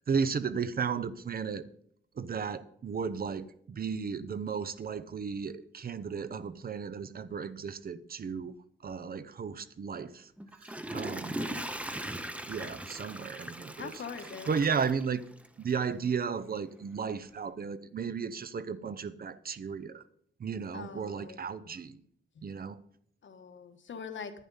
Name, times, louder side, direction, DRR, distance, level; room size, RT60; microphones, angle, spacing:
voice 1, 0.0-1.6 2.2-8.5 8.8-10.3 10.6-11.4 12.5-14.0 14.5-15.2 15.6-20.0 20.4-22.0 22.4-22.8, right 6 dB, 50° right, 0.6 m, -34 dB
Water / Toilet flush, 10.4-15.7 16.1-16.2, right 1 dB, 5° right, 0.6 m, -39 dB
voice 2, 11.4-11.7 13.8-14.5 20.7-21.4 22.3-22.4 23.2-24.3, left 6 dB, 70° left, 1.3 m, -43 dB
11.0 x 9.7 x 5.5 m
wide cardioid pair, 160°, 20 cm